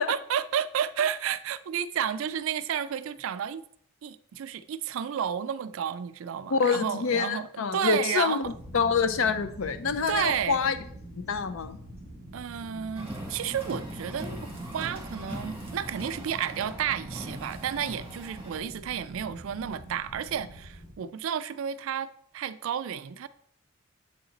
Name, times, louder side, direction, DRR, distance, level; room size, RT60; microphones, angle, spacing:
voice 1, 0.0-3.6 4.0-8.5 10.1-10.6 12.3-23.3, right 8 dB, 65° right, 0.3 m, -31 dB
voice 2, 6.5-10.8 11.1-11.8, left 5 dB, 65° left, 0.5 m, -26 dB
sound 1, 8.4-20.9, equal, 50° left, 2.2 m, -44 dB
Car, 13.0-18.6, right 1 dB, 10° right, 1.4 m, -41 dB
7.8 x 4.0 x 3.8 m
head